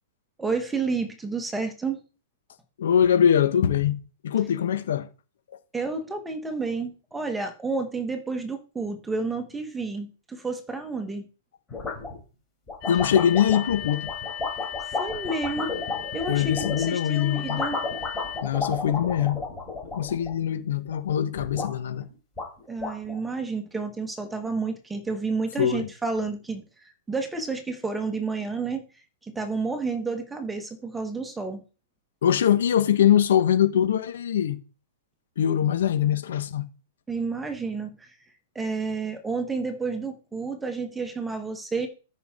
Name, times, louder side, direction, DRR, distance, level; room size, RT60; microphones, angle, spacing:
voice 1, 0.4-2.0 5.7-11.2 14.9-15.8 16.1-17.8 22.7-26.6 27.1-28.8 29.2-31.6 37.1-38.1 38.5-41.9, right 4 dB, 5° right, 1.1 m, -30 dB
voice 2, 2.8-5.1 12.9-14.1 16.3-17.6 18.4-19.4 19.9-22.1 25.6-25.9 32.2-34.6 35.4-36.7, left 9 dB, 65° left, 1.1 m, -23 dB
sound 1, 11.7-12.2 12.7-16.9 17.3-20.6 20.9-21.7 22.1-22.2 22.4-23.2, left 3 dB, 10° left, 3.3 m, -33 dB
sound 2, 12.8-18.4, left 11 dB, 35° left, 1.4 m, -36 dB
13.5 x 5.7 x 3.7 m
hypercardioid pair, 170°, 0 cm